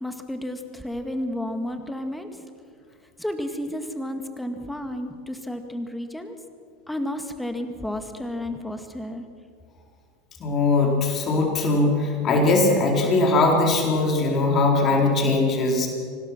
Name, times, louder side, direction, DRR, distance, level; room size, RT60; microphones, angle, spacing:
voice 1, 0.0-2.3 3.2-6.3 6.9-9.3, left 1 dB, 5° left, 6 dB, 2.0 m, -31 dB
voice 2, 10.4-15.9, left 2 dB, 35° left, 1 dB, 4.3 m, -20 dB
25.0 x 19.0 x 6.1 m, 2.2 s
hypercardioid pair, 80°, 0 cm